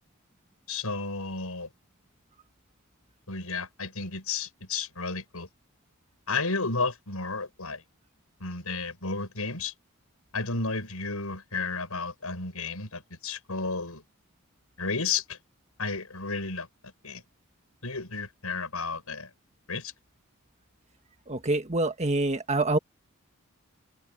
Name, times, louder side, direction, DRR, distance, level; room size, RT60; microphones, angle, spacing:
voice 1, 0.7-1.7 3.3-5.5 6.3-7.8 8.4-9.7 10.3-14.0 14.8-15.4 15.8-16.7 17.0-17.2 17.8-19.3 19.7-19.9, left 4 dB, 85° left, 5.6 m, -32 dB
voice 2, 21.3-22.8, right 2 dB, 30° right, 1.7 m, -26 dB
head